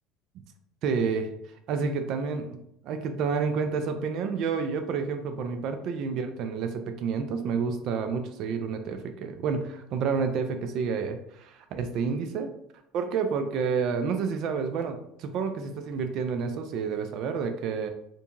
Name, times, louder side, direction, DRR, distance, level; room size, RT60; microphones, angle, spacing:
voice 1, 0.8-1.3 1.7-12.5 12.9-17.9, right 5 dB, 60° right, 7 dB, 0.3 m, -29 dB
2.7 x 2.6 x 2.3 m, 0.77 s
supercardioid pair, 100°, 0 cm